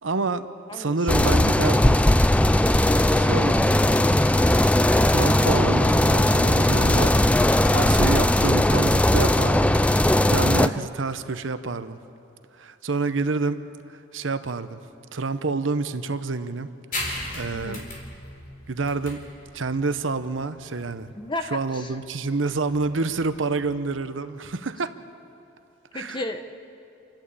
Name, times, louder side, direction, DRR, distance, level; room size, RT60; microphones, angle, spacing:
voice 1, 0.0-0.5 0.7-2.0 3.2-4.1 5.1-7.1 7.7-9.8 10.3-12.0 12.6-13.6 14.1-14.8 15.1-16.7 17.0-17.8 18.7-19.2 19.5-21.1 21.5-24.9 25.9-26.2, right 3 dB, 90° right, 11 dB, 0.9 m, -28 dB
sound 1, 1.1-10.7, left 1 dB, 5° left, 0.4 m, -19 dB
voice 2, 10.6-10.9 17.5-17.8 21.1-22.0 25.9-26.4, left 2 dB, 25° left, 6 dB, 1.1 m, -33 dB
sound 2, 16.9-24.0, left 1 dB, 45° left, 4.3 m, -37 dB
28.0 x 12.0 x 8.3 m, 2.8 s
head